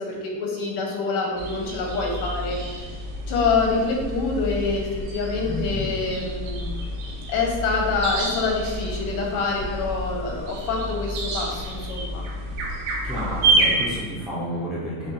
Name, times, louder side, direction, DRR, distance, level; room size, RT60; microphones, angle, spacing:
voice 1, 0.0-2.9 3.3-6.9 7.3-12.2, left 4 dB, 75° left, -1 dB, 1.2 m, -26 dB
sound 1, 1.4-14.0, right 1 dB, 85° right, 1.1 m, -28 dB
voice 2, 5.5-5.9 13.0-15.1, equal, ahead, -9 dB, 0.4 m, -31 dB
6.4 x 2.1 x 2.8 m, 1.5 s
cardioid pair, 175°, 46 cm